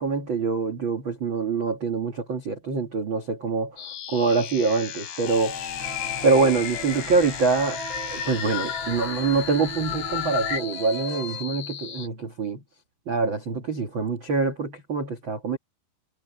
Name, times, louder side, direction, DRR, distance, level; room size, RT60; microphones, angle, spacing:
voice 1, 0.0-3.8 4.1-5.6 6.2-7.8 8.1-12.6 13.1-15.6, right 4 dB, 65° right, 1.2 m, -25 dB
sound 1, 3.8-12.1, left 9 dB, 65° left, 4.5 m, -38 dB
sound 2, 5.3-10.6, left 9 dB, 80° left, 4.8 m, -33 dB
sound 3, 5.8-11.4, right 4 dB, 90° right, 5.3 m, -41 dB
omnidirectional pair, 5.3 m